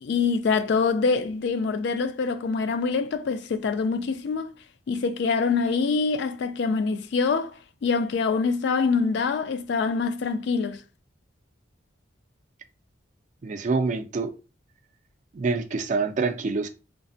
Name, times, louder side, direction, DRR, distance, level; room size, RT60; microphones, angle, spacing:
voice 1, 0.0-4.5 4.9-7.5 7.8-10.8, left 4 dB, 65° left, 0.3 m, -25 dB
voice 2, 13.4-14.3 15.3-16.7, right 4 dB, 40° right, 0.3 m, -26 dB
3.2 x 2.1 x 2.6 m
head